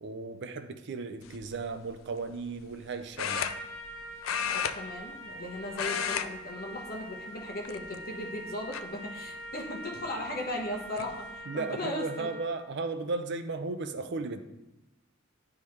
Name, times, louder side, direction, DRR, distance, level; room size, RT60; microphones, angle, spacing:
voice 1, 0.0-3.5 11.5-14.4, right 3 dB, 60° right, 9 dB, 0.5 m, -35 dB
sound 1, 1.2-1.5 3.2-4.0 4.2-5.4 5.7-6.3 6.6-6.8 7.6-8.2 8.7-8.8 10.3-10.4 10.7-11.1, left 8 dB, 90° left, 0.4 m, -32 dB
Trumpet, 3.3-12.6, right 1 dB, 85° right, 1.1 m, -44 dB
voice 2, 4.5-12.3, left 1 dB, 50° left, 1 dB, 1.1 m, -37 dB
10.0 x 3.6 x 3.2 m, 0.99 s
head